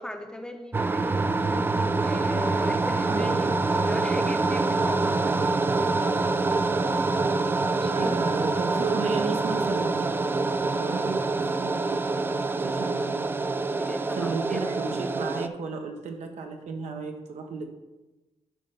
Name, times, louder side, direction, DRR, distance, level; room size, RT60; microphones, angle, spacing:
voice 1, 0.0-6.3 7.8-8.5 13.8-14.6, left 1 dB, 5° left, 5 dB, 0.7 m, -38 dB
sound 1, 0.7-15.5, right 3 dB, 20° right, 0.3 m, -26 dB
voice 2, 7.6-10.1 10.6-13.2 14.2-17.6, right 4 dB, 80° right, 4 dB, 1.1 m, -34 dB
10.0 x 3.3 x 5.4 m, 1.1 s
cardioid pair, 115°, 12 cm